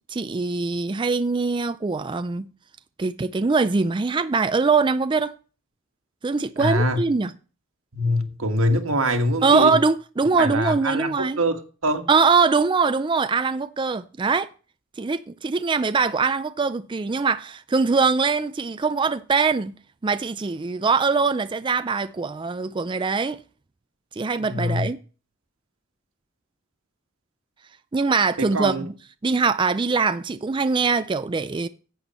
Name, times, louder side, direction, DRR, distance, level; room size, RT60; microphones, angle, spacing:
voice 1, 0.1-2.5 3.0-5.3 6.2-7.3 9.4-11.4 12.1-14.5 15.0-19.7 20.0-23.4 24.2-25.0 27.9-28.9 29.2-31.7, right 4 dB, 25° right, 0.4 m, -22 dB
voice 2, 6.6-7.0 7.9-9.8 10.4-11.6 11.8-12.0 24.4-24.9 28.4-28.8, equal, 90° right, 1.6 m, -23 dB
11.0 x 8.0 x 4.2 m
head